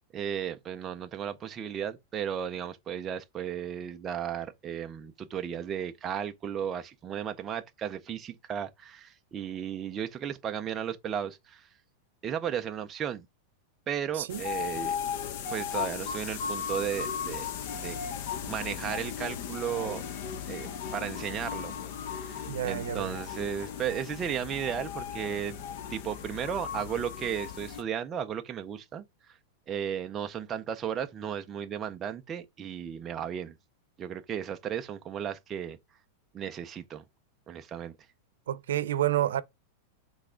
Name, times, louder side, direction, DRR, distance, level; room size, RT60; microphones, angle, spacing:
voice 1, 0.1-11.7 12.2-13.3 13.9-15.0 15.5-17.5 17.7-18.0 18.4-20.0 20.5-21.7 22.1-25.6 25.9-29.0 29.7-33.5 34.0-35.8 36.3-37.0 37.5-38.0, right 8 dB, 15° right, 0.4 m, -35 dB
sound 1, 14.3-27.8, left 7 dB, 40° left, 0.8 m, -36 dB
voice 2, 22.5-23.2 38.5-39.4, right 12 dB, 80° right, 0.6 m, -29 dB
6.1 x 3.3 x 4.9 m
supercardioid pair, 180°, 0 cm